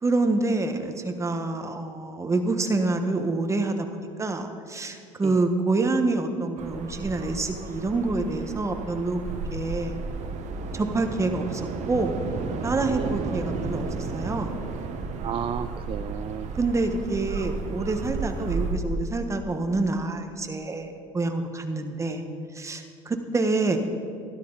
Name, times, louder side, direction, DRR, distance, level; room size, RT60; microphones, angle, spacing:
voice 1, 0.0-9.2 9.5-10.0 10.7-12.2 12.6-14.6 16.5-22.2 22.5-23.8, right 3 dB, 20° right, 6 dB, 1.3 m, -27 dB
sound 1, 6.6-18.7, right 4 dB, 55° right, 1.2 m, -33 dB
voice 2, 12.9-13.4 15.2-16.5, right 9 dB, 40° right, 10 dB, 0.4 m, -33 dB
12.5 x 12.5 x 4.0 m, 2.4 s
supercardioid pair, 80°, 14 cm